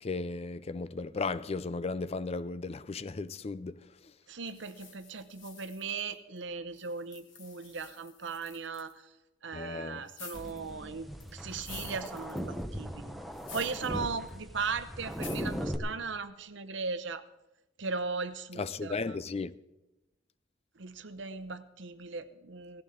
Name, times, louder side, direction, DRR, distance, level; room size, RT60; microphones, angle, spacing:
voice 1, 0.0-3.8 9.5-10.0 18.6-19.5, left 3 dB, 35° left, 0.4 m, -35 dB
voice 2, 4.3-9.1 9.4-13.1 13.5-17.2 17.8-19.2 20.8-22.8, right 4 dB, 70° right, 0.9 m, -38 dB
sound 1, 4.5-6.4 6.7-8.9 10.1-10.7 11.2-12.6 13.3-14.0 14.3-14.4 15.1-15.6, left 6 dB, 80° left, 2.2 m, -50 dB
sound 2, 10.3-15.8, equal, ahead, 0.9 m, -39 dB
17.5 x 15.5 x 3.8 m
head